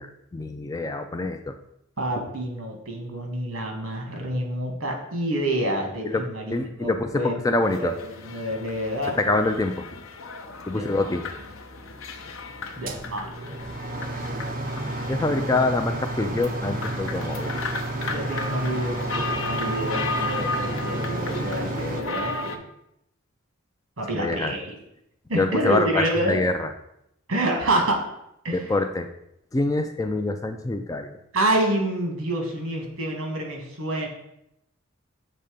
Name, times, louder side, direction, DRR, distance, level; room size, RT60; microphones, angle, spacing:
voice 1, 0.0-1.5 6.0-6.2 6.5-7.9 9.2-9.9 10.7-11.2 15.1-17.6 24.1-24.5 25.3-26.7 28.5-29.1 29.5-31.2, left 2 dB, 15° left, 6 dB, 0.3 m, -25 dB
voice 2, 2.0-6.5 6.8-8.0 8.2-9.4 10.8-11.1 12.8-13.3 18.1-22.6 24.0-24.7 25.3-26.4 27.3-28.0 28.4-28.7 31.3-34.1, right 1 dB, 70° right, 2 dB, 1.6 m, -28 dB
sound 1, 7.6-22.6, left 2 dB, 70° left, 0.7 m, -34 dB
sound 2, 12.8-22.0, right 2 dB, 40° right, 0.6 m, -31 dB
6.8 x 3.2 x 5.0 m, 0.80 s
head